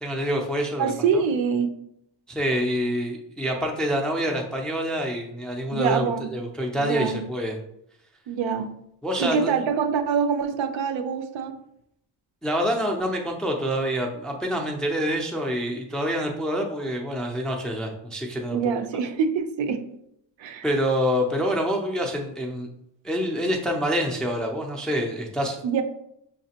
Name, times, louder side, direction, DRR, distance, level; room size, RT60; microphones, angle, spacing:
voice 1, 0.0-1.2 2.3-7.6 9.0-9.5 12.4-18.6 20.6-22.7 23.0-25.6, equal, ahead, 1 dB, 0.3 m, -26 dB
voice 2, 0.8-1.7 5.7-6.3 6.8-7.2 8.3-8.7 9.2-11.6 18.5-19.8 20.4-20.7 25.6-25.8, right 6 dB, 80° right, 7 dB, 0.7 m, -25 dB
5.7 x 3.2 x 2.8 m, 0.76 s
wide cardioid pair, 165°, 46 cm